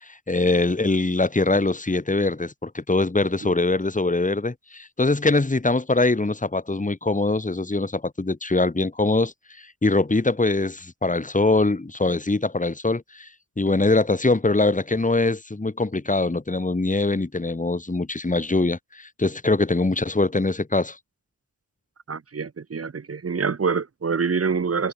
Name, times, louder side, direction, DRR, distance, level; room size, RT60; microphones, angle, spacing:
voice 1, 0.0-13.3 13.6-21.0, left 2 dB, 20° left, 1.2 m, -23 dB
voice 2, 22.1-24.9, right 5 dB, 40° right, 0.7 m, -26 dB
wide cardioid pair, 65°, 36 cm